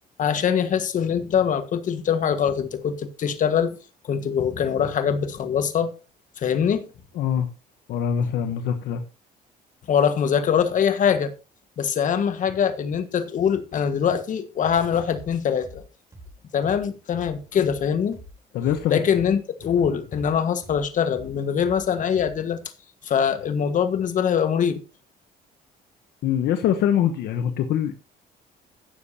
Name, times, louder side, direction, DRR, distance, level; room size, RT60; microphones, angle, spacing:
voice 1, 0.2-3.8 4.0-5.9 6.4-6.8 9.9-11.3 11.8-15.8 16.5-18.2 18.9-22.6 23.0-24.8, left 7 dB, 50° left, 1.5 m, -23 dB
voice 2, 7.1-7.5 7.9-9.0 18.5-19.0 26.2-27.9, left 9 dB, 75° left, 1.0 m, -23 dB
sound 1, 14.6-14.8 15.1-18.8 19.1-22.5, right 1 dB, 20° right, 3.8 m, -45 dB
16.5 x 7.1 x 2.8 m
cardioid pair, 110°, 17 cm